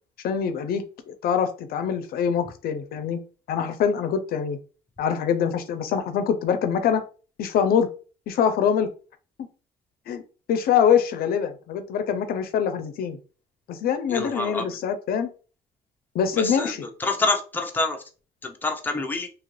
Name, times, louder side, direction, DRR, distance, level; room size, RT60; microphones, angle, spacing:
voice 1, 0.2-3.2 3.5-4.6 5.0-7.0 7.4-7.9 8.3-8.9 10.1-10.2 10.5-13.2 13.7-15.3 16.1-16.9, left 7 dB, 65° left, 0.5 m, -24 dB
voice 2, 14.1-14.6 16.3-16.7 17.0-18.0 18.4-19.3, left 3 dB, 10° left, 0.6 m, -26 dB
2.9 x 2.4 x 3.1 m
cardioid pair, 110°, 17 cm